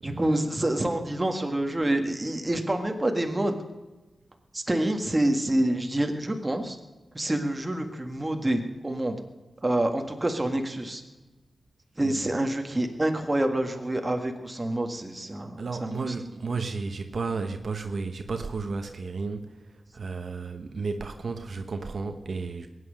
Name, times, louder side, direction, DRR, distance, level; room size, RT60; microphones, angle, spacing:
voice 1, 0.0-3.6 4.5-6.8 7.1-9.2 9.6-11.0 12.0-15.5 15.8-16.1, right 1 dB, 20° right, 4 dB, 1.7 m, -27 dB
voice 2, 12.0-12.3 15.6-22.7, right 4 dB, 60° right, 6 dB, 1.0 m, -33 dB
21.5 x 9.6 x 6.6 m, 1.1 s
wide cardioid pair, 140°, 0 cm